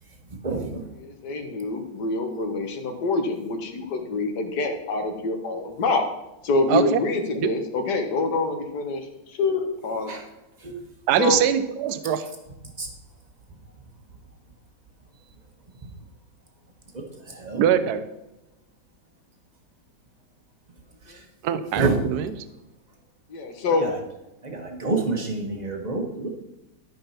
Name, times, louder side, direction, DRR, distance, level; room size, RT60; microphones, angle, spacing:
voice 1, 0.4-0.8 10.1-10.2 10.6-10.7 12.8-12.9 17.4-17.6 21.8-22.0 23.8-23.9 24.4-26.3, right 3 dB, 25° right, 2 dB, 1.4 m, -27 dB
voice 2, 1.0-6.1 6.4-9.1 9.4-10.1 11.2-11.4 23.3-23.9, left 3 dB, 65° left, 6 dB, 1.8 m, -26 dB
voice 3, 6.7-7.0 7.4-7.5 11.1-12.2 17.6-18.0 21.4-22.4, right 9 dB, 70° right, 11 dB, 1.2 m, -22 dB
13.0 x 5.4 x 5.8 m, 0.93 s
omnidirectional pair, 2.0 m